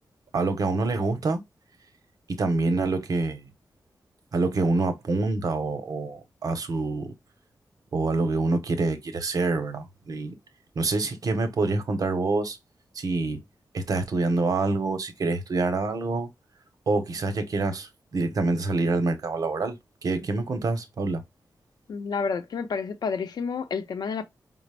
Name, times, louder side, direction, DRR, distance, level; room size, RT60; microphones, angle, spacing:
voice 1, 0.3-1.4 2.3-3.5 4.3-7.1 7.9-10.3 10.8-12.6 12.9-13.4 13.7-16.3 16.9-19.7 20.0-21.2, right 3 dB, 60° right, 0.8 m, -26 dB
voice 2, 21.9-24.2, left 5 dB, 75° left, 0.6 m, -30 dB
4.9 x 2.0 x 3.3 m
wide cardioid pair, 135°, 7 cm